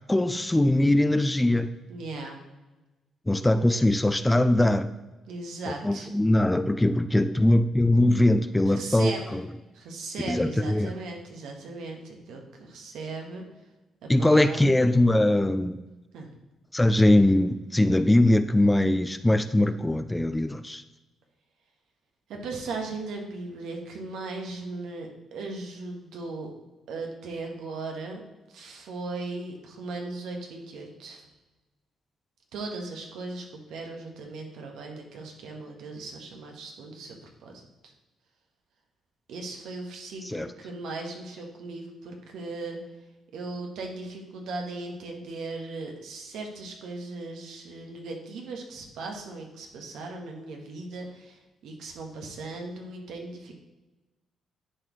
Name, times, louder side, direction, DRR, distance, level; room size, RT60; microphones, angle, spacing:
voice 1, 0.1-1.7 3.3-4.9 5.8-9.4 10.2-10.9 14.1-15.8 16.7-20.8 40.2-40.5, left 1 dB, 10° left, 11 dB, 0.4 m, -21 dB
voice 2, 1.9-2.4 5.3-6.1 8.7-9.2 9.7-13.4 14.0-14.7 16.1-16.3 22.3-26.5 26.9-28.2 28.5-31.3 32.5-37.2 37.4-37.9 39.3-42.8 43.3-53.5, right 3 dB, 80° right, 2 dB, 1.3 m, -38 dB
10.5 x 4.1 x 3.1 m, 1.1 s
cardioid pair, 90°, 0 cm